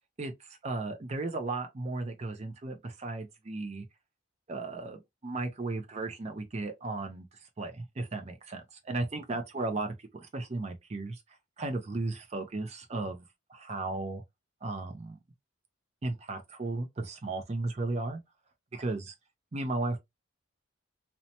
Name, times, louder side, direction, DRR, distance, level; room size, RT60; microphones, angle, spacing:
voice 1, 0.2-3.8 4.5-7.3 7.6-11.2 11.6-13.2 13.5-14.2 14.6-15.2 16.0-18.2 18.7-19.1 19.5-20.0, right 2 dB, 35° right, 0.5 m, -35 dB
2.7 x 2.1 x 2.7 m
head